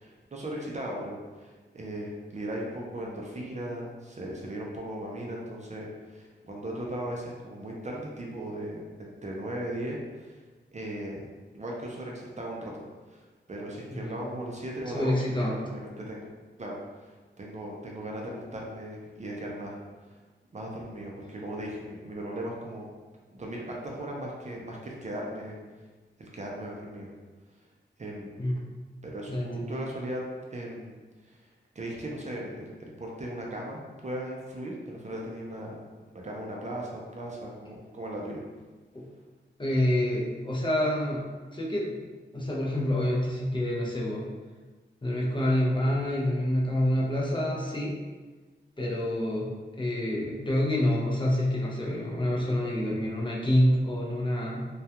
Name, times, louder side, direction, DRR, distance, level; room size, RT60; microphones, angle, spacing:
voice 1, 0.0-10.4 10.7-11.3 11.5-12.8 13.1-16.3 16.6-19.8 20.1-20.2 20.5-22.9 23.3-25.6 26.2-27.1 28.0-28.4 29.0-30.2 30.5-31.0 31.2-31.4 31.8-35.8 36.2-38.4, right 1 dB, 40° right, -2 dB, 0.4 m, -37 dB
voice 2, 14.9-15.6 28.4-28.7 29.3-29.7 38.9-39.0 39.6-41.3 41.5-42.0 42.3-44.2 45.0-47.9 48.8-49.5 49.8-54.6, left 1 dB, 25° left, -4 dB, 0.5 m, -27 dB
2.2 x 2.2 x 2.8 m, 1.3 s
wide cardioid pair, 80°, 20 cm